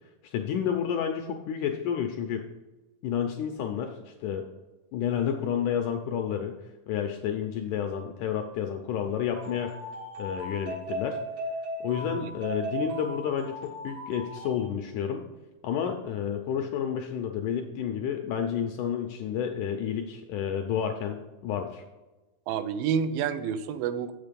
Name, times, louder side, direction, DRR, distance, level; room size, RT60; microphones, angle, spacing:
voice 1, 0.3-2.4 3.0-4.5 4.9-6.6 6.9-9.7 10.2-11.2 11.8-15.2 15.6-21.8, left 8 dB, 80° left, 4 dB, 1.8 m, -30 dB
sound 1, 9.3-14.7, right 1 dB, 55° right, 1.2 m, -37 dB
voice 2, 22.5-24.1, right 7 dB, 85° right, 11 dB, 2.3 m, -29 dB
7.4 x 6.5 x 5.2 m, 1.1 s
omnidirectional pair, 4.2 m